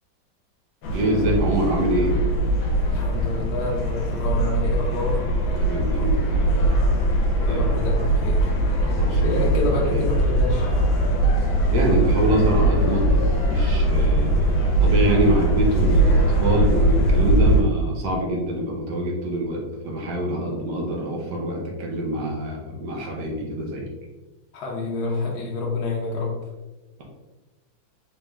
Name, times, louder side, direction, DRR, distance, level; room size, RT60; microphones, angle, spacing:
sound 1, 0.8-17.6, right 1 dB, 85° left, 1.4 m, -21 dB
voice 1, 0.9-2.2 5.6-6.6 7.5-7.8 8.8-10.0 11.7-13.2 13.5-14.5 14.8-23.9, right 1 dB, 65° right, -1 dB, 1.2 m, -25 dB
voice 2, 2.8-5.2 7.4-8.5 9.2-10.7 20.5-20.6 24.5-26.3, left 3 dB, 65° left, -3 dB, 1.1 m, -28 dB
4.0 x 3.4 x 2.3 m, 1.1 s
omnidirectional pair, 2.1 m